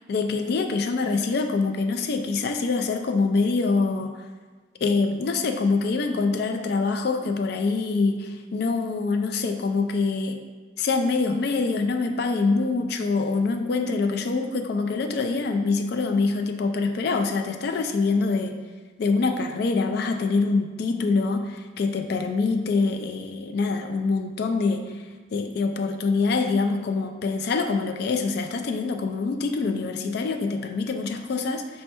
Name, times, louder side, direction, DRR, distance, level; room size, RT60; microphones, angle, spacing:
voice 1, 0.1-4.1 4.8-10.4 10.8-18.6 19.0-31.8, left 4 dB, 50° left, 5 dB, 0.3 m, -25 dB
4.3 x 2.2 x 4.2 m, 1.4 s
head